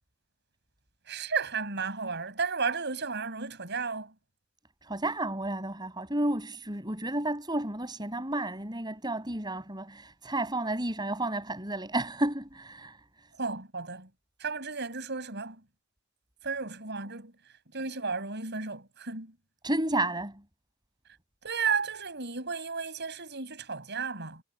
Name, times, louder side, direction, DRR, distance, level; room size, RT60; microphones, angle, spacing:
voice 1, 1.1-4.1 13.4-14.1 14.4-15.6 16.4-17.4 17.7-19.4 21.4-24.4, right 5 dB, 55° right, 7.8 m, -33 dB
voice 2, 4.8-13.0 19.6-20.4, right 1 dB, 20° right, 6.6 m, -31 dB
head